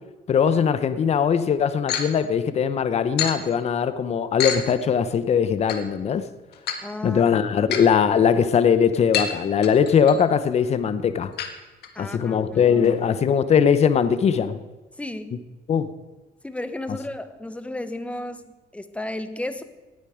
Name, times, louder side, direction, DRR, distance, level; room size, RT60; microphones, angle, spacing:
voice 1, 0.3-6.3 7.0-11.3 12.0-14.6 15.7-15.9, left 7 dB, 40° left, 12 dB, 0.8 m, -20 dB
sound 1, 1.9-2.1 3.2-3.4 4.4-4.6 5.7-5.8 6.5-6.8 7.7-7.9 9.1-9.3 9.6-10.2 11.4-11.5 11.8-11.9 12.2-12.3 12.8-12.9, left 8 dB, 70° left, 1.6 m, -26 dB
voice 2, 6.8-7.2 7.6-7.7 11.9-13.0 15.0-15.5 16.4-19.6, left 1 dB, 5° left, 11 dB, 0.9 m, -34 dB
18.0 x 8.9 x 5.0 m, 1.2 s
cardioid pair, 110°, 17 cm